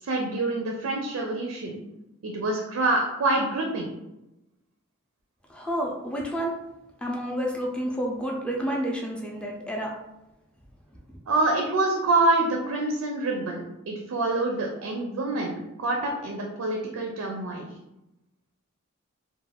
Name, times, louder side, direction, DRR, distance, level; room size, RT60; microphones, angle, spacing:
voice 1, 0.0-1.8 2.2-4.0 11.3-17.7, right 2 dB, 80° right, 0 dB, 0.4 m, -26 dB
voice 2, 5.5-6.6 7.0-10.0, equal, 5° left, -1 dB, 0.4 m, -30 dB
2.4 x 2.2 x 3.3 m, 0.94 s
head